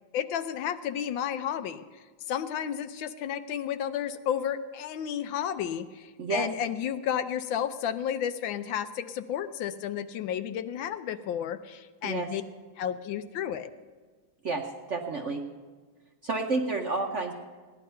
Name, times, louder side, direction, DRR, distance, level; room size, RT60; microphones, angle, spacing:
voice 1, 0.1-1.8 2.3-12.4 12.8-13.7, left 9 dB, 75° left, 11 dB, 1.3 m, -32 dB
voice 2, 6.2-6.5 12.0-12.3 14.4-15.4 16.2-17.3, right 3 dB, 55° right, 2 dB, 0.8 m, -30 dB
16.5 x 11.0 x 5.5 m, 1.4 s
omnidirectional pair, 2.2 m